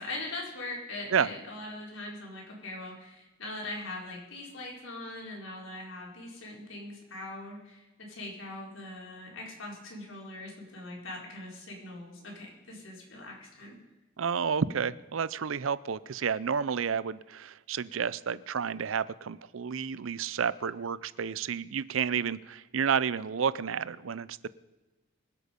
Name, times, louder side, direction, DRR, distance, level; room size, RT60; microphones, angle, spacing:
voice 1, 0.0-13.8, left 2 dB, 85° left, -2 dB, 4.6 m, -41 dB
voice 2, 14.2-24.5, right 6 dB, 90° right, 19 dB, 0.5 m, -30 dB
24.5 x 8.4 x 5.3 m, 1.1 s
head